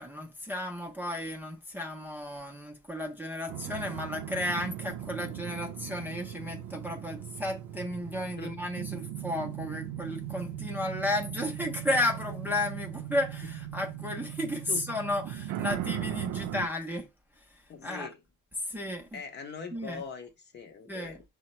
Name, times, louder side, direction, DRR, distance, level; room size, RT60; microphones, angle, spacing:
voice 1, 0.0-17.1 17.8-18.1 18.7-19.2 19.7-20.0 20.9-21.2, left 1 dB, 5° right, 0.5 m, -33 dB
sound 1, 3.5-16.7, right 12 dB, 75° right, 0.5 m, -38 dB
voice 2, 17.7-18.2 19.1-21.2, left 5 dB, 35° left, 0.7 m, -41 dB
5.6 x 2.1 x 4.0 m
cardioid pair, 145°, 31 cm